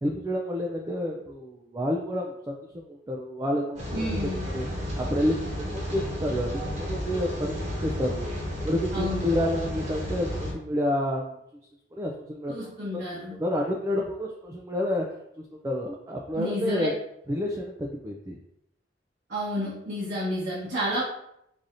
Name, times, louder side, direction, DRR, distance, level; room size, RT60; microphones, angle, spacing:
voice 1, 0.0-4.0 4.5-4.7 5.0-8.3 8.6-11.4 11.9-13.0 13.4-15.0 15.6-16.9 17.3-18.4, left 1 dB, 15° right, -1 dB, 0.3 m, -29 dB
Rain, 3.8-10.5, equal, 40° right, 1.1 m, -32 dB
voice 2, 3.9-4.5 8.9-9.3 12.5-13.4 16.3-16.9 19.3-21.0, equal, 75° right, -9 dB, 1.2 m, -30 dB
4.7 x 2.7 x 2.6 m, 0.77 s
head